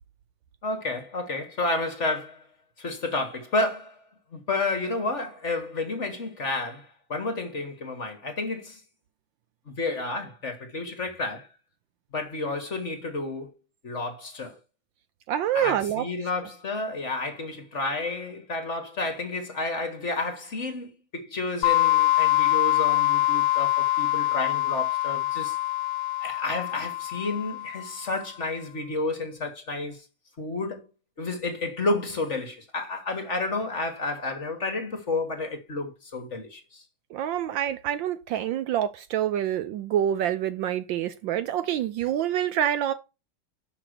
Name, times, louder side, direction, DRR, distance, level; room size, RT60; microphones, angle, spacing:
voice 1, 0.6-2.5 2.8-4.0 4.3-8.8 9.7-11.5 12.1-13.6 13.8-14.6 15.5-25.6 26.2-30.0 30.4-30.8 31.2-36.8, left 2 dB, 40° left, 1.5 m, -31 dB
voice 2, 15.3-16.1 37.1-42.9, right 10 dB, 75° right, 1.2 m, -26 dB
sound 1, 21.6-28.1, left 16 dB, 75° left, 1.3 m, -24 dB
5.9 x 5.8 x 6.3 m
omnidirectional pair, 2.3 m